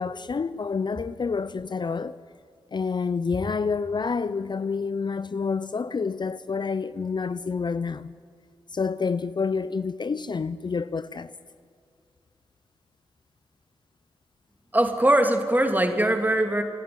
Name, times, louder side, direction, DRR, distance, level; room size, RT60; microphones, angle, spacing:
voice 1, 0.0-2.2 2.7-8.1 8.7-11.3, left 5 dB, 45° left, 0.5 m, -28 dB
voice 2, 14.7-16.6, right 1 dB, 15° right, 2.8 m, -21 dB
27.0 x 11.0 x 9.6 m
supercardioid pair, 40°, 10 cm